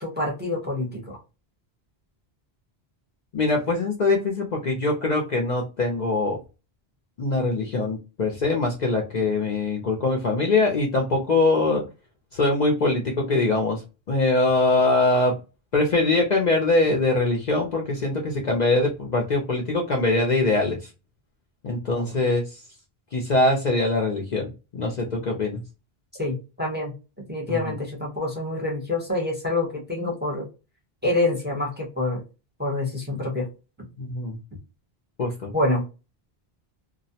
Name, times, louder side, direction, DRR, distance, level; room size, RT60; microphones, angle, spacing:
voice 1, 0.0-1.2 21.9-22.1 26.2-26.9 27.3-30.5 31.0-32.2 32.6-33.5 35.5-35.8, left 2 dB, 10° right, -1 dB, 0.7 m, -26 dB
voice 2, 3.3-6.4 7.2-11.8 12.3-13.8 14.1-15.3 15.7-20.9 21.6-22.6 23.1-25.6 27.5-27.7 34.0-34.4 35.2-35.5, left 2 dB, 50° left, 0 dB, 0.6 m, -23 dB
2.3 x 2.0 x 2.7 m, 0.30 s
omnidirectional pair, 1.1 m